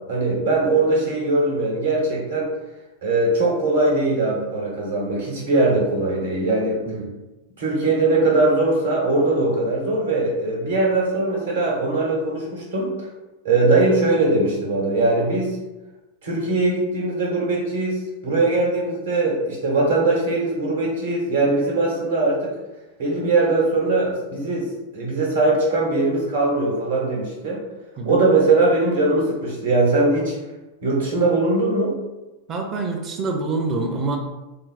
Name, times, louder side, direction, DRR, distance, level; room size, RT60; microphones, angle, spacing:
voice 1, 0.1-2.5 3.0-6.8 7.6-13.1 13.4-15.6 16.2-22.5 23.0-24.7 24.9-27.6 28.0-30.3 30.8-31.9, right 2 dB, 60° right, -3 dB, 1.1 m, -21 dB
voice 2, 32.5-34.2, right 3 dB, 30° right, 2 dB, 0.6 m, -26 dB
3.6 x 2.0 x 4.2 m, 1.1 s
figure-of-eight pair, 90°, 0 cm